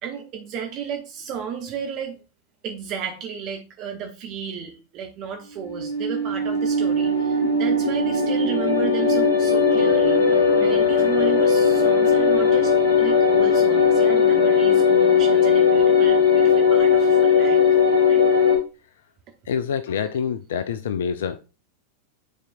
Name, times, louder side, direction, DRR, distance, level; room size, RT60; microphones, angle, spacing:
voice 1, 0.0-2.2 2.6-17.6 18.1-18.3, right 7 dB, 40° right, 1.1 m, -33 dB
sound 1, 5.6-18.6, left 5 dB, 75° left, 1.7 m, -18 dB
voice 2, 19.5-21.4, left 7 dB, 60° left, 0.4 m, -26 dB
10.0 x 4.4 x 2.6 m
figure-of-eight pair, 90°, 0 cm